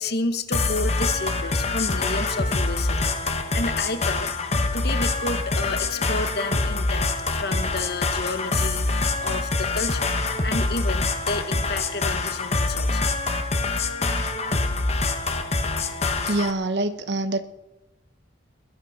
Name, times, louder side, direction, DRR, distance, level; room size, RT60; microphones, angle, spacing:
voice 1, 0.0-4.4 4.7-10.1 10.4-13.1, left 2 dB, 50° left, 9 dB, 1.1 m, -31 dB
sound 1, 0.5-16.5, left 3 dB, 30° left, 1.2 m, -25 dB
voice 2, 16.3-17.4, right 2 dB, 60° right, 11 dB, 1.0 m, -25 dB
20.5 x 11.5 x 5.7 m, 1.0 s
head